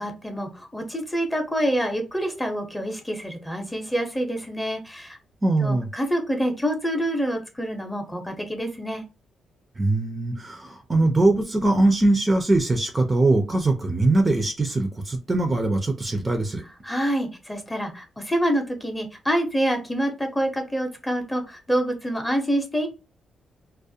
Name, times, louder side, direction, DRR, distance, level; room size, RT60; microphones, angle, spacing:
voice 1, 0.0-5.2 5.6-9.0 16.8-22.9, equal, 10° left, 0.7 m, -26 dB
voice 2, 5.4-5.9 9.8-16.6, right 2 dB, 25° right, 0.5 m, -21 dB
2.4 x 2.1 x 2.7 m
cardioid pair, 95°, 0 cm